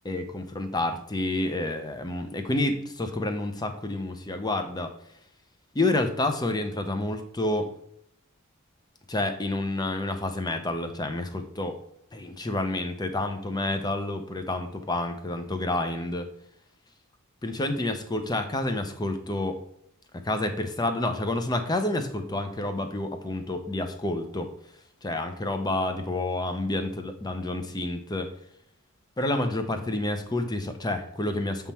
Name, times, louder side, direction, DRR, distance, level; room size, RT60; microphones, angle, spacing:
voice 1, 0.0-4.9 5.7-7.7 9.1-11.8 12.1-16.3 17.4-19.6 20.2-24.5 25.0-28.3 29.2-31.7, left 2 dB, 20° left, 7 dB, 0.7 m, -29 dB
7.2 x 3.7 x 4.3 m, 0.71 s
head